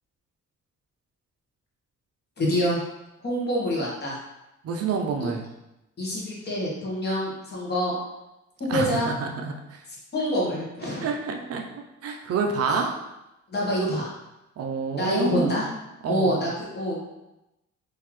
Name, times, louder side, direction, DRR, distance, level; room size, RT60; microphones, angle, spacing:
voice 1, 2.4-2.8 3.2-4.2 5.2-5.3 6.0-7.9 8.6-9.1 10.1-11.1 12.7-12.8 13.5-14.1 14.9-15.7 16.1-17.0, equal, 35° left, -5 dB, 1.1 m, -26 dB
voice 2, 4.6-5.5 8.7-9.8 11.0-11.6 12.0-12.9 14.6-15.6 16.0-16.4, right 5 dB, 50° right, 3 dB, 0.5 m, -28 dB
3.7 x 2.8 x 3.0 m, 0.93 s
wide cardioid pair, 160°, 30 cm